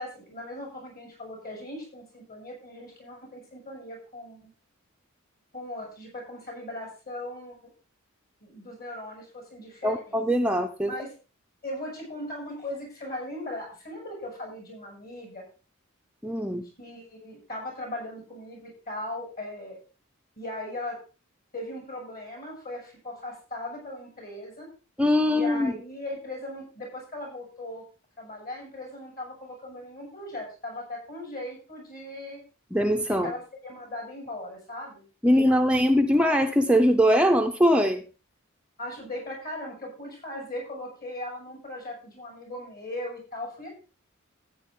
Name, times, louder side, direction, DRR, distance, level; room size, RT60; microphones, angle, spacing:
voice 1, 0.0-4.5 5.5-7.6 8.4-10.2 10.8-11.1 11.6-15.4 16.8-19.8 20.4-21.0 21.5-24.7 25.2-27.8 28.2-32.4 33.1-35.6 38.8-43.7, left 1 dB, 50° left, 0 dB, 7.2 m, -38 dB
voice 2, 9.8-10.9 16.2-16.6 25.0-25.7 32.7-33.3 35.2-38.0, equal, 5° right, 4 dB, 0.7 m, -22 dB
14.0 x 9.1 x 3.8 m, 0.34 s
head